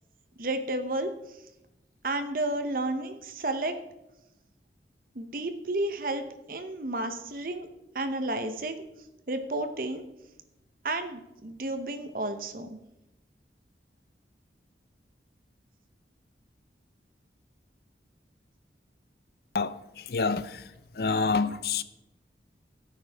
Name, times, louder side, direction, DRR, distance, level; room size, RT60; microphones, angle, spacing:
voice 1, 0.4-1.1 2.0-3.8 5.1-7.7 7.9-8.8 9.3-10.0 10.8-12.7, right 2 dB, 50° right, 0.9 m, -31 dB
voice 2, 19.5-20.7 20.9-21.8, left 4 dB, 55° left, 0.6 m, -28 dB
16.5 x 9.4 x 3.5 m
head